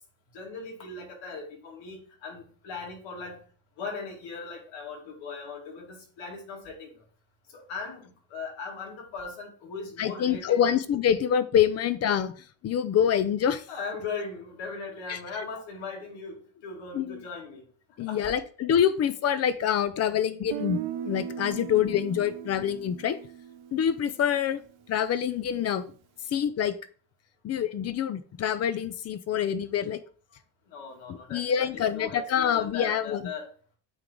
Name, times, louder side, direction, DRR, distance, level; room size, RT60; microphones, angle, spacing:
voice 1, 0.3-3.4 3.8-7.0 7.5-10.8 13.7-17.6 18.1-18.3 30.7-33.5, left 4 dB, 75° left, 1 dB, 2.5 m, -39 dB
voice 2, 10.0-12.3 12.6-13.6 15.1-15.2 16.9-17.2 18.0-23.2 23.7-24.6 24.9-25.9 26.3-26.7 27.4-30.0 31.3-33.3, left 9 dB, 35° left, 13 dB, 0.4 m, -26 dB
Guitar, 20.5-24.5, right 10 dB, 75° right, 0.7 m, -38 dB
9.0 x 3.7 x 3.7 m, 0.42 s
cardioid pair, 165°, 46 cm